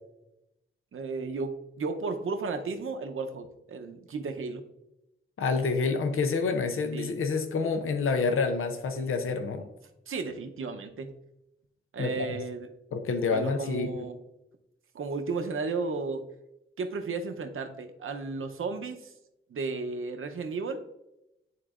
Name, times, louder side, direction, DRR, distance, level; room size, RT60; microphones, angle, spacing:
voice 1, 0.9-1.5 1.8-4.6 6.9-7.1 10.1-11.1 11.9-12.7 13.3-14.2 14.9-16.2 16.8-19.1 19.5-20.8, right 4 dB, 80° right, 6 dB, 0.7 m, -34 dB
voice 2, 5.4-9.7 12.0-12.2 12.9-14.1, left 4 dB, 85° left, 7 dB, 0.6 m, -28 dB
11.0 x 3.8 x 2.4 m, 0.88 s
wide cardioid pair, 90°, 21 cm